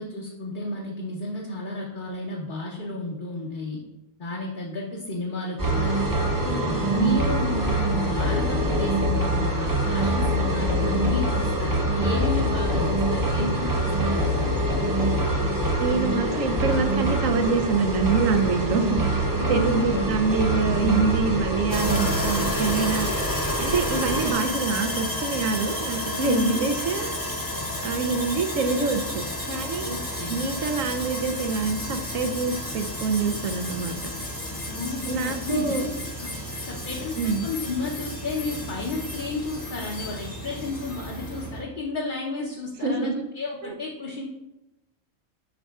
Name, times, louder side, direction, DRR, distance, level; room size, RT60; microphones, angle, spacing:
voice 1, 0.0-3.8 4.2-6.0 6.4-14.3 19.4-20.1 23.9-24.4 26.2-26.6 29.8-30.4 34.7-35.8 36.2-36.3 36.7-44.3, left 3 dB, 45° left, -3 dB, 0.8 m, -32 dB
sound 1, 5.6-24.3, right 1 dB, 20° right, 0.7 m, -24 dB
voice 2, 15.8-23.1 23.6-27.1 27.8-29.9 30.3-34.0 35.1-35.8 37.2-37.5 42.8-43.2 43.6-43.7, right 4 dB, 80° right, 7 dB, 1.1 m, -26 dB
Sawing, 21.7-41.6, left 1 dB, 15° left, 0.9 m, -32 dB
7.5 x 5.4 x 2.4 m, 0.95 s
omnidirectional pair, 1.4 m